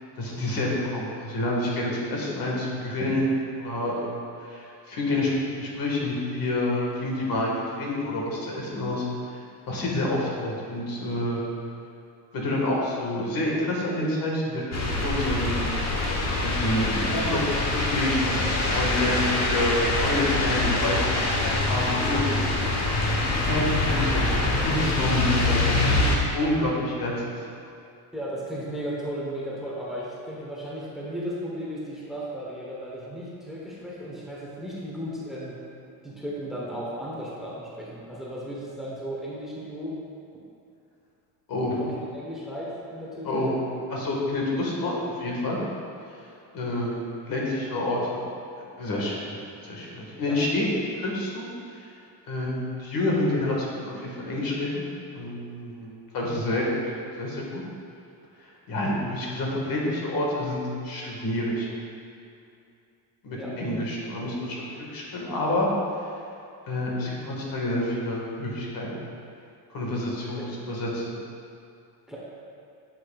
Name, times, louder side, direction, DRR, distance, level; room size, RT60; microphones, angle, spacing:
voice 1, 0.2-5.3 5.6-9.0 9.3-9.4 9.7-11.4 12.3-15.6 16.3-21.2 21.4-23.0 23.3-26.0 26.3-27.4 41.5-41.8 43.3-43.5 43.9-45.6 46.5-48.2 48.8-51.5 51.7-51.9 52.3-54.8 55.1-56.7 57.2-57.6 58.7-61.7 63.2-64.7 64.9-65.7 66.7-69.0 69.7-71.1, left 1 dB, 55° left, -3 dB, 1.7 m, -28 dB
sound 1, 14.7-26.2, left 2 dB, 40° left, 1.1 m, -24 dB
voice 2, 28.1-35.6 36.0-40.0 40.3-40.4 41.8-43.5 50.2-50.4 63.3-63.6 70.4-70.5 72.1-72.2, equal, ahead, -6 dB, 1.1 m, -35 dB
8.5 x 8.0 x 2.4 m, 2.6 s
cardioid pair, 140°, 42 cm